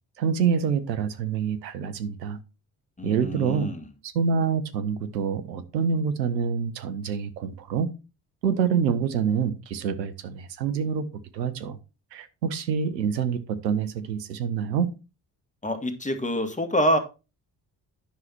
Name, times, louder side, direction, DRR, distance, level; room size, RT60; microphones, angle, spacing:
voice 1, 0.2-2.4 3.0-3.7 4.0-7.9 8.4-11.1 11.3-11.8 12.1-14.9, right 6 dB, 85° right, 0.9 m, -26 dB
voice 2, 3.0-3.9 15.6-17.0, equal, 15° left, 2.0 m, -26 dB
10.0 x 5.7 x 4.4 m
figure-of-eight pair, 45°, 49 cm